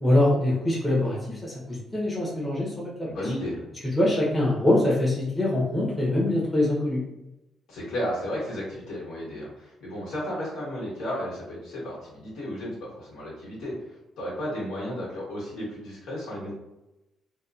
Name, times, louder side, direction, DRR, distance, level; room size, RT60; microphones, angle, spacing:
voice 1, 0.0-2.9 3.2-3.3 4.0-7.0, left 1 dB, 15° left, -5 dB, 0.9 m, -24 dB
voice 2, 3.1-3.6 7.7-13.7 14.2-16.5, equal, 80° left, -6 dB, 1.4 m, -33 dB
2.8 x 2.2 x 2.4 m, 0.92 s
cardioid pair, 90°, 0 cm